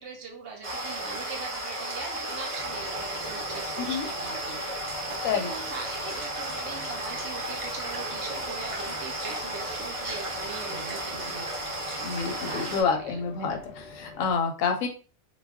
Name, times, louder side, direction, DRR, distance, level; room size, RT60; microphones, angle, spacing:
voice 1, 0.0-12.1 12.4-13.6, right 4 dB, 60° right, 2 dB, 0.8 m, -41 dB
sound 1, 0.6-12.8, right 1 dB, 45° right, 0.4 m, -34 dB
sound 2, 2.6-14.3, left 3 dB, 55° left, 0.6 m, -46 dB
voice 2, 12.0-14.9, left 5 dB, 80° left, 5 dB, 1.0 m, -28 dB
2.3 x 2.2 x 3.4 m, 0.37 s
omnidirectional pair, 1.5 m